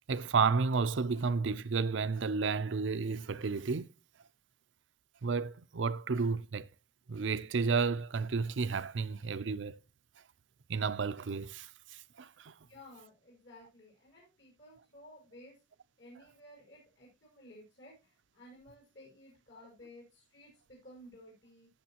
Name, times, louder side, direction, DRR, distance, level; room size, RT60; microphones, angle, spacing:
voice 1, 0.1-3.9 5.2-6.7 7.1-9.8 10.7-12.5, right 5 dB, 90° right, 0.6 m, -32 dB
voice 2, 12.7-15.6 16.0-21.7, left 1 dB, 70° left, 5.8 m, -55 dB
14.5 x 7.1 x 2.9 m
head